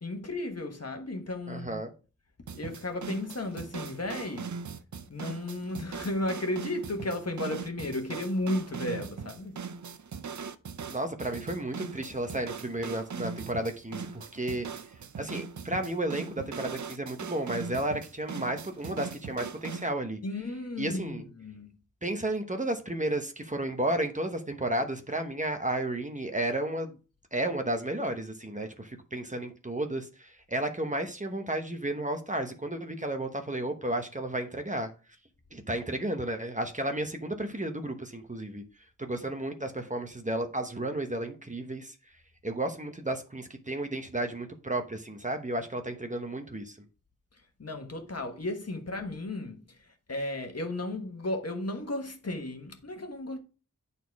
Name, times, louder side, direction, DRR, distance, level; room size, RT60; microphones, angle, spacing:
voice 1, 0.0-1.8 2.5-4.6 5.1-9.6 20.2-21.7 47.6-53.4, left 1 dB, 50° left, 1.4 m, -34 dB
voice 2, 1.5-1.9 10.9-14.7 15.2-20.2 20.8-21.2 22.0-26.9 27.3-34.9 35.5-38.6 39.0-41.9 42.4-46.8, right 1 dB, 25° right, 1.0 m, -32 dB
sound 1, 2.5-19.9, right 5 dB, 65° right, 0.6 m, -40 dB
9.2 x 4.2 x 4.7 m
wide cardioid pair, 75°, 31 cm